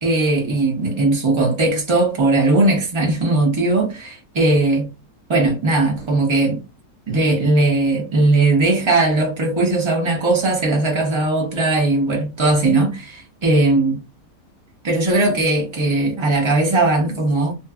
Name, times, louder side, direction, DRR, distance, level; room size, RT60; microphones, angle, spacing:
voice 1, 0.0-4.9 5.3-6.6 7.1-14.0 14.8-17.5, right 2 dB, 30° right, 0.5 m, -18 dB
2.6 x 2.5 x 2.3 m
omnidirectional pair, 1.8 m